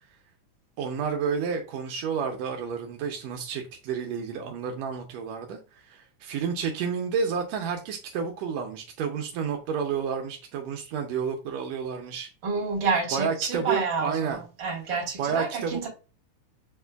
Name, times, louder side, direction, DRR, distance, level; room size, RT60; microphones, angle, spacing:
voice 1, 0.8-12.3 13.1-14.4 15.2-15.9, right 6 dB, 90° right, 1.5 m, -30 dB
voice 2, 12.4-14.2 14.6-15.9, right 4 dB, 50° right, 1.6 m, -28 dB
6.6 x 2.5 x 2.2 m
omnidirectional pair, 3.6 m